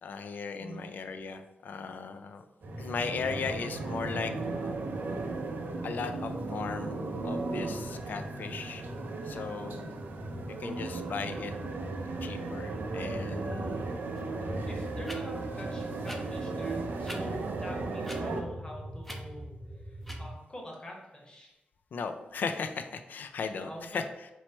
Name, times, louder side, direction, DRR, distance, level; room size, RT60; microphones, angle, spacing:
voice 1, 0.0-2.4 2.8-4.3 4.6-4.7 5.8-7.0 7.2-8.8 9.2-9.9 10.6-11.5 12.2-14.1 21.9-24.0, left 5 dB, 70° left, 8 dB, 0.3 m, -37 dB
sound 1, 2.6-20.3, equal, 45° right, 0.9 m, -42 dB
sound 2, 2.6-18.4, right 3 dB, 75° right, 0.4 m, -37 dB
sound 3, 14.2-14.3 15.0-15.2 16.0-16.2 17.0-17.2 18.0-18.2 19.0-19.2 20.0-20.2, equal, 5° left, 0.5 m, -42 dB
voice 2, 14.6-19.5 19.8-21.5 23.6-24.0, equal, 25° left, 0 dB, 1.0 m, -45 dB
3.0 x 3.0 x 4.3 m, 0.99 s
wide cardioid pair, 120°, 3 cm